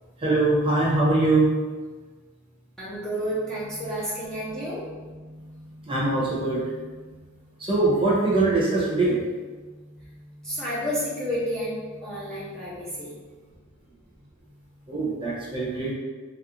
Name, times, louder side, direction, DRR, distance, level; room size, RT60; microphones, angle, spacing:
voice 1, 0.2-1.5 5.1-7.3 7.6-9.2 14.9-15.9, right 2 dB, 25° right, -6 dB, 0.8 m, -23 dB
voice 2, 2.8-4.8 10.4-13.2, equal, 5° left, -10 dB, 0.6 m, -30 dB
3.2 x 2.5 x 3.1 m, 1.3 s
head